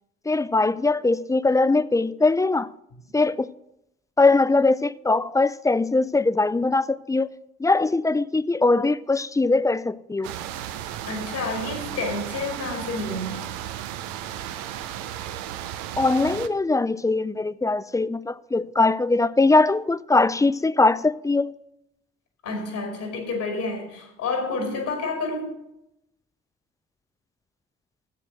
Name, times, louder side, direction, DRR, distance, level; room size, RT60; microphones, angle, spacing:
voice 1, 0.3-2.7 3.1-3.5 4.2-7.3 7.6-10.3 16.0-21.5, left 3 dB, 10° left, 0.3 m, -21 dB
sound 1, 10.2-16.5, right 11 dB, 80° right, 0.6 m, -34 dB
voice 2, 11.1-13.5 22.4-25.5, left 3 dB, 70° left, 2.3 m, -29 dB
7.6 x 6.8 x 7.7 m
hypercardioid pair, 45°, 29 cm